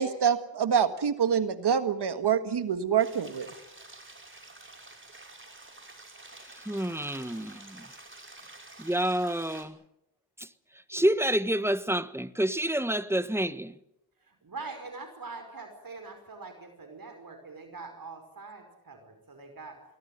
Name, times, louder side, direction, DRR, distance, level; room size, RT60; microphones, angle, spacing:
voice 1, 0.0-3.5, right 7 dB, 85° right, 1.7 m, -26 dB
sound 1, 3.0-9.6, right 2 dB, 30° right, 5.8 m, -49 dB
voice 2, 6.5-7.9 8.8-9.8 10.4-10.5 10.9-13.7, right 1 dB, 5° right, 1.4 m, -28 dB
voice 3, 14.2-19.8, right 3 dB, 60° right, 5.4 m, -43 dB
23.5 x 17.5 x 9.4 m
cardioid pair, 50°, 39 cm